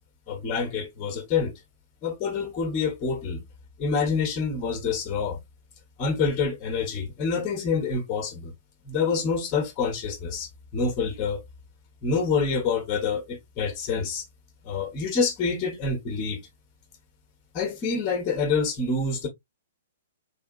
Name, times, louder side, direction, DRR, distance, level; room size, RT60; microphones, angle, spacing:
voice 1, 0.3-1.5 2.0-3.4 3.8-5.4 6.0-8.5 8.8-11.4 12.0-14.2 14.6-16.4 17.5-19.3, left 5 dB, 30° left, 1.2 m, -27 dB
3.5 x 3.5 x 2.5 m
figure-of-eight pair, 115°, 0 cm